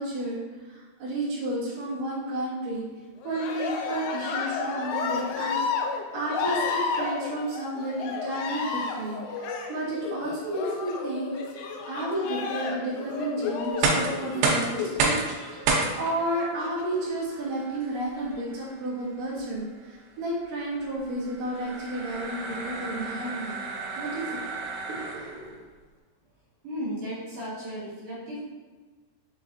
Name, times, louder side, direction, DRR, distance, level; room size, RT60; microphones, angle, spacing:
voice 1, 0.0-2.8 3.2-5.9 6.1-11.4 11.9-15.2 15.5-23.6 24.0-24.4 24.9-25.6, right 1 dB, 55° right, -9 dB, 2.2 m, -32 dB
Cheering, 3.2-14.9 16.2-17.0 17.8-18.4, left 5 dB, 85° left, 2.5 m, -32 dB
sound 1, 5.1-5.5 5.9-6.2 6.5-6.6 7.8-8.4 8.7-11.8 12.9-15.0 15.2-16.0, left 5 dB, 70° left, 3.2 m, -38 dB
sound 2, 13.6-25.5, right 4 dB, 90° right, 3.0 m, -31 dB
voice 2, 26.6-28.5, equal, 75° right, -9 dB, 2.6 m, -35 dB
6.8 x 3.0 x 2.5 m, 1.3 s
omnidirectional pair, 4.9 m